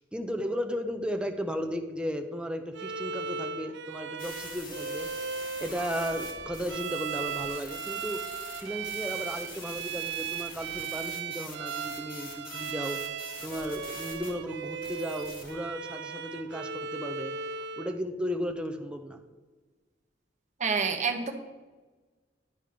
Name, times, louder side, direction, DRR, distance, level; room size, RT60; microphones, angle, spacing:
voice 1, 0.0-5.1 5.6-8.2 8.6-13.0 13.4-17.4 17.8-19.2, equal, 5° right, 5 dB, 0.7 m, -35 dB
Bowed string instrument, 2.7-18.0, right 6 dB, 65° right, 0.5 m, -37 dB
sound 1, 4.2-14.3 14.8-15.6, left 3 dB, 50° left, 1.9 m, -45 dB
voice 2, 20.6-21.3, right 5 dB, 40° right, 5 dB, 1.0 m, -27 dB
11.0 x 5.3 x 5.1 m, 1.3 s
head